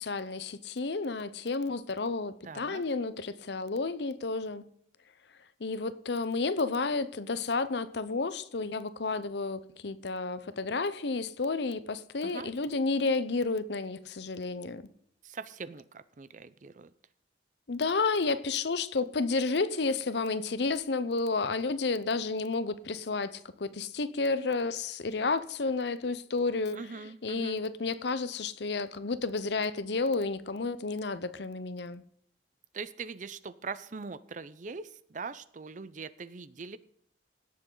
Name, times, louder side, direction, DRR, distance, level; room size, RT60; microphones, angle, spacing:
voice 1, 0.0-4.7 5.6-14.9 17.7-26.8 27.2-32.0, left 3 dB, 65° left, 0.7 m, -31 dB
voice 2, 2.4-2.8 12.2-12.5 15.2-16.9 26.7-27.6 32.7-36.8, right 4 dB, 45° right, 0.5 m, -42 dB
17.0 x 7.5 x 3.9 m
head